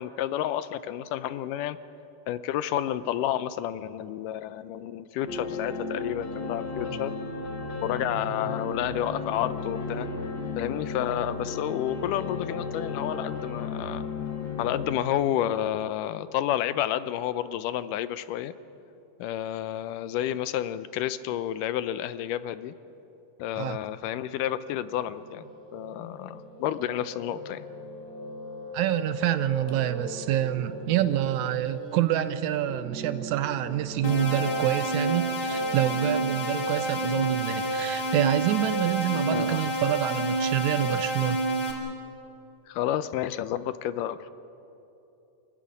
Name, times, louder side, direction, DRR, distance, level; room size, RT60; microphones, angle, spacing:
voice 1, 0.0-1.8 2.3-7.2 7.8-10.1 10.6-14.1 14.6-18.5 19.2-22.7 23.4-25.4 25.7-27.7 39.3-39.6 42.7-44.3, left 11 dB, 85° left, 13 dB, 2.3 m, -30 dB
sound 1, 5.3-15.0, left 4 dB, 40° left, 1.9 m, -34 dB
Piano, 24.7-39.1, right 2 dB, 20° right, 1.9 m, -40 dB
voice 2, 28.7-41.4, right 12 dB, 75° right, 12 dB, 1.9 m, -27 dB
sound 2, 34.0-41.7, right 1 dB, 55° left, 4.5 m, -28 dB
27.5 x 14.0 x 9.9 m, 2.8 s
omnidirectional pair, 3.7 m